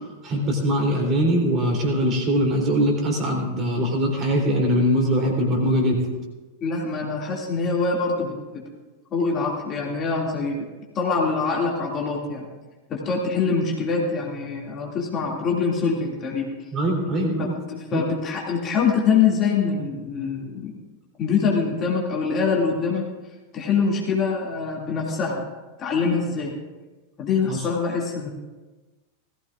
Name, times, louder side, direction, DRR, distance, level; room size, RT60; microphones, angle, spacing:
voice 1, 0.2-6.1 16.7-17.5 17.9-18.0 27.5-27.6, equal, 30° right, -1 dB, 3.6 m, -22 dB
voice 2, 6.6-8.6 9.1-10.7 10.9-12.5 12.9-16.5 17.4-20.7 21.2-23.1 23.5-25.4 25.8-26.5 27.2-28.3, left 5 dB, 30° left, -2 dB, 2.5 m, -24 dB
19.5 x 14.5 x 2.6 m, 1.2 s
figure-of-eight pair, 90°, 0 cm